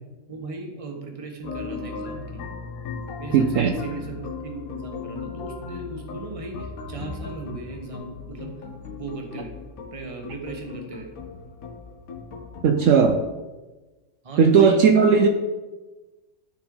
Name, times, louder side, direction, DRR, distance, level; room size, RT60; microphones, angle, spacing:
voice 1, 0.3-2.4 3.2-8.5 9.0-9.5 9.9-11.1 14.2-15.2, right 2 dB, 25° right, 2 dB, 1.1 m, -37 dB
sound 1, 1.4-13.2, left 4 dB, 85° left, 1.5 m, -37 dB
voice 2, 3.3-3.7 12.6-13.2 14.4-15.3, right 6 dB, 70° right, 5 dB, 1.0 m, -16 dB
12.5 x 4.4 x 3.8 m, 1.2 s
omnidirectional pair, 1.5 m